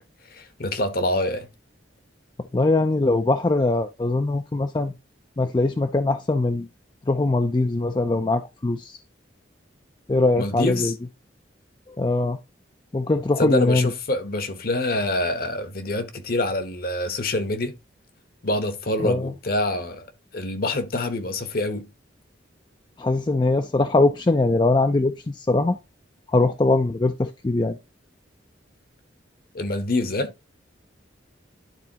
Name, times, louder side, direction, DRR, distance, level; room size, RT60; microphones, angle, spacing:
voice 1, 0.3-1.5 10.3-10.9 13.4-17.8 18.4-20.1 20.3-21.9 29.5-30.3, left 2 dB, 50° left, 1.0 m, -26 dB
voice 2, 2.5-4.9 5.4-6.7 7.1-9.0 10.1-10.9 12.0-12.4 12.9-13.9 19.0-19.3 23.0-25.8 26.3-27.8, left 2 dB, 25° left, 0.4 m, -21 dB
12.0 x 4.0 x 2.8 m
head